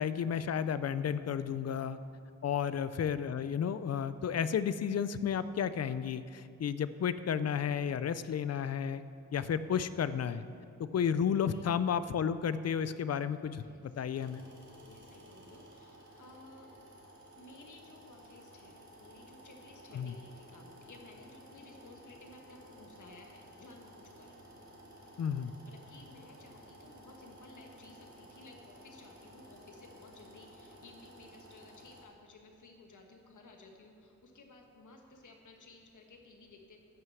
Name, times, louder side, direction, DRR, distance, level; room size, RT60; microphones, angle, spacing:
voice 1, 0.0-2.0 2.4-9.0 9.3-10.4 10.9-14.4 19.9-20.1 25.2-25.6, left 7 dB, 60° left, 14 dB, 0.4 m, -32 dB
voice 2, 13.6-14.1 14.8-16.7 17.3-24.4 25.7-36.8, left 2 dB, 80° left, 2 dB, 1.4 m, -56 dB
sound 1, 14.1-32.0, equal, 70° right, 2.3 m, -55 dB
10.5 x 6.5 x 7.6 m, 2.5 s
wide cardioid pair, 155°, 30 cm